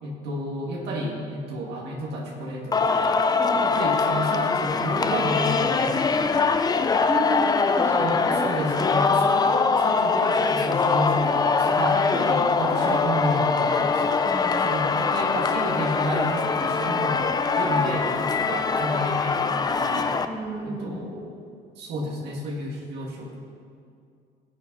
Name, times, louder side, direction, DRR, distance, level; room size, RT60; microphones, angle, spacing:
voice 1, 0.0-3.2 3.6-6.8 8.0-14.2 14.6-17.2 17.6-20.1 20.6-21.4 21.7-23.4, equal, 80° right, -2 dB, 2.1 m, -31 dB
Singing, 2.7-20.2, left 4 dB, 25° left, 0.5 m, -23 dB
voice 2, 7.1-8.6 12.1-12.3 14.2-15.1 17.7-17.9 20.2-21.0, right 1 dB, 15° right, -2 dB, 2.1 m, -32 dB
17.0 x 8.0 x 4.0 m, 2.3 s
cardioid pair, 110°, 17 cm